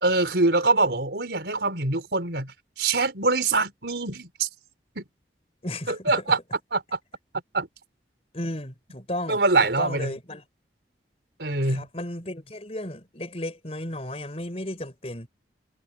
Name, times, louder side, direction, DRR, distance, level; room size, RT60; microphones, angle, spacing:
voice 1, 0.0-4.5 5.0-5.1 5.9-6.4 6.7-7.0 7.5-7.7 9.3-10.1 11.4-11.9, right 3 dB, 80° right, 4.2 m, -24 dB
voice 2, 5.6-6.1 8.3-9.4 9.8-10.4 11.6-15.3, left 1 dB, 35° left, 4.8 m, -34 dB
head